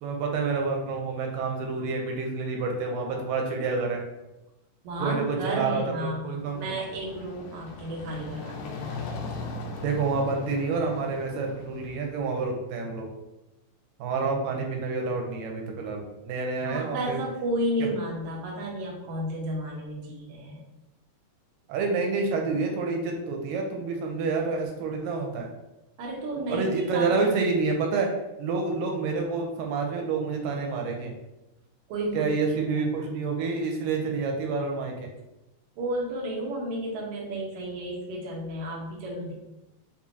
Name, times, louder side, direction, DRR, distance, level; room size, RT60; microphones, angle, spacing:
voice 1, 0.0-4.0 5.0-6.6 9.8-13.1 14.0-17.2 17.8-17.9 21.7-25.5 26.5-31.1 32.1-35.1, right 4 dB, 90° right, 2 dB, 2.3 m, -28 dB
voice 2, 4.8-6.2 6.5-9.2 16.6-20.6 26.0-27.1 31.9-32.3 32.7-32.8 35.8-39.3, right 1 dB, 65° right, -3 dB, 1.6 m, -32 dB
sound 1, 6.2-12.2, left 2 dB, 80° left, 1.8 m, -39 dB
6.9 x 2.4 x 2.7 m, 0.96 s
omnidirectional pair, 3.8 m